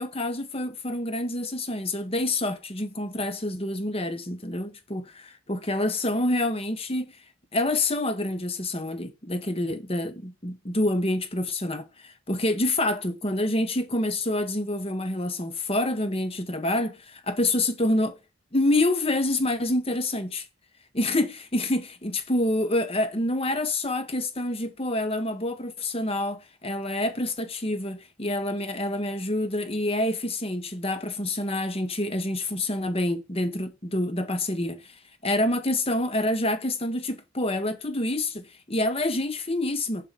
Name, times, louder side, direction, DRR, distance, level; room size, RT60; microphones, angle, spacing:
voice 1, 0.0-5.1 5.5-7.1 7.5-18.2 18.5-20.4 20.9-34.8 35.2-40.1, left 1 dB, 25° left, 1.1 m, -27 dB
7.2 x 5.7 x 5.3 m
head